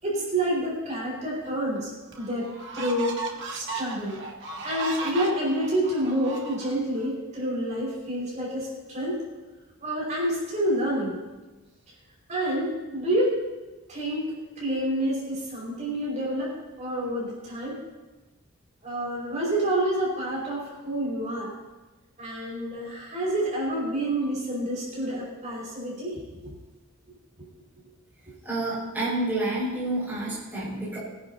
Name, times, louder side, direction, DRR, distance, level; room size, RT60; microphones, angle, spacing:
voice 1, 0.0-2.5 2.7-3.2 3.5-4.2 4.6-9.2 9.8-11.2 12.3-13.3 13.9-17.8 18.8-21.5 22.2-26.6, right 1 dB, 35° right, -5 dB, 5.5 m, -28 dB
sound 1, 1.4-1.5 2.1-7.1, right 4 dB, 60° right, 1.7 m, -36 dB
voice 2, 28.4-31.0, right 2 dB, 10° right, -8 dB, 5.4 m, -29 dB
23.5 x 11.0 x 2.9 m, 1.1 s
head